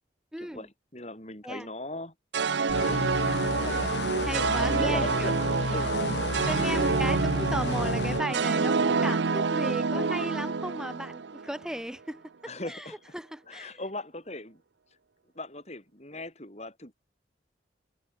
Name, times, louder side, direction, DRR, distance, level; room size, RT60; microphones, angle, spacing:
voice 1, 0.3-0.7 1.4-1.7 4.2-5.3 6.5-12.3 12.6-13.8, equal, 5° right, 4.4 m, -36 dB
voice 2, 0.9-2.1 2.7-3.3 3.6-3.9 4.5-5.3 5.7-6.0 9.9-10.1 12.4-13.0 13.5-14.6 15.3-16.9, left 2 dB, 35° left, 7.9 m, -39 dB
sound 1, 2.3-11.7, right 4 dB, 70° right, 0.7 m, -27 dB
sound 2, 2.7-8.2, left 3 dB, 65° left, 1.1 m, -32 dB
head